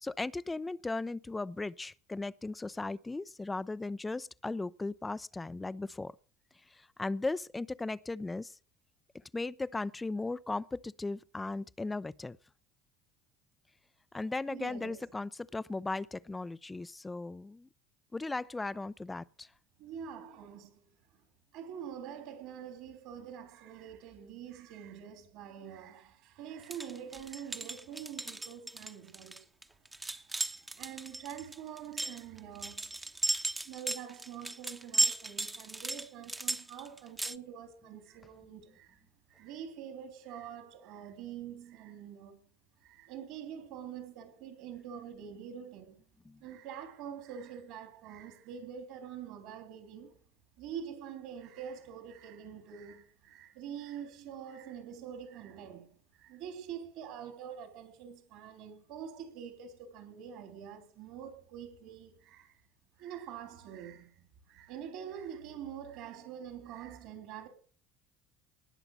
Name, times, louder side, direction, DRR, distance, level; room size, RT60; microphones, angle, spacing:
voice 1, 0.0-6.1 6.7-8.5 9.3-12.4 14.1-17.7 18.1-19.5 46.3-46.4, left 3 dB, 15° left, 0.6 m, -37 dB
voice 2, 14.5-15.0 19.8-20.8 21.5-29.4 30.8-32.9 33.6-39.0 39.3-42.4 42.8-45.9 46.4-50.1 50.6-62.5 63.0-64.1 64.5-67.5, right 8 dB, 65° right, 3.4 m, -45 dB
sound 1, 26.6-37.4, right 2 dB, 10° right, 1.0 m, -35 dB
19.5 x 7.0 x 6.6 m
hypercardioid pair, 65°, 0 cm